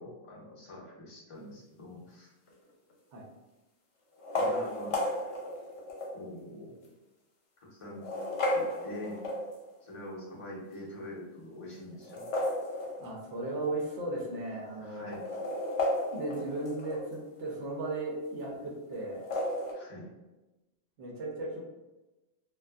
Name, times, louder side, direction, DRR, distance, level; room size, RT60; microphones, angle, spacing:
voice 1, 0.0-2.3 4.3-5.0 6.1-6.9 7.7-8.0 8.5-9.2 9.8-12.2 14.8-15.2 19.7-20.1, left 1 dB, 35° left, -5 dB, 0.6 m, -44 dB
sound 1, 2.5-2.9 4.1-6.2 6.8-6.9 7.8-9.8 11.9-13.4 13.7-13.8 14.0-14.1 14.9-17.2 19.1-19.7, left 1 dB, 65° left, 0.9 m, -33 dB
voice 2, 13.0-15.2 16.1-19.2 21.0-21.6, right 2 dB, 70° right, -2 dB, 0.9 m, -36 dB
2.5 x 2.4 x 2.3 m, 1.1 s
omnidirectional pair, 1.3 m